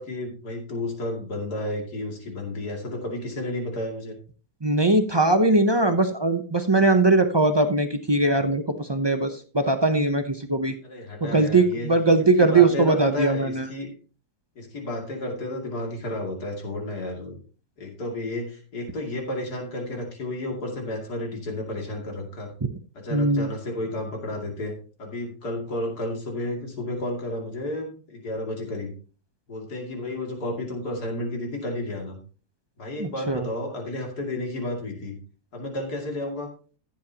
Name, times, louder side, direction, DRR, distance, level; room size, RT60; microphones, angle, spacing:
voice 1, 0.0-4.2 10.8-11.9 12.4-13.9 14.6-17.4 17.8-22.5 22.9-24.7 25.0-28.9 29.5-32.2 32.8-35.2 35.5-36.5, left 1 dB, 70° left, 1 dB, 3.1 m, -32 dB
voice 2, 4.6-10.7 11.2-13.7 23.1-23.5 33.0-33.5, right 2 dB, 40° right, 7 dB, 0.3 m, -20 dB
15.5 x 7.4 x 2.9 m, 0.38 s
omnidirectional pair, 1.7 m